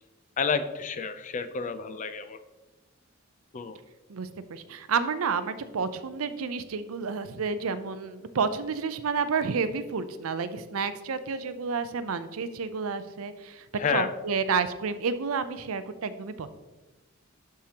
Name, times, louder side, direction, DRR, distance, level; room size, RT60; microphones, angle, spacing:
voice 1, 0.4-2.4 3.5-3.8 13.8-14.1, left 5 dB, 35° left, 11 dB, 0.4 m, -29 dB
voice 2, 4.1-16.5, right 5 dB, 80° right, 12 dB, 0.5 m, -30 dB
11.5 x 4.9 x 2.9 m, 1.1 s
head